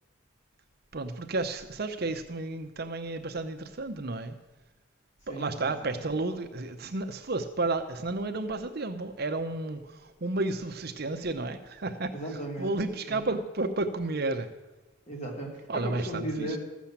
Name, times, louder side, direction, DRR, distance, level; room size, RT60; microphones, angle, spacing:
voice 1, 0.9-4.4 5.3-12.1 12.6-14.5 15.7-16.6, right 2 dB, 50° right, 8 dB, 0.7 m, -32 dB
voice 2, 5.3-6.1 12.1-13.3 15.1-16.6, right 1 dB, 35° left, 0 dB, 2.6 m, -37 dB
14.0 x 7.2 x 7.3 m, 1.1 s
head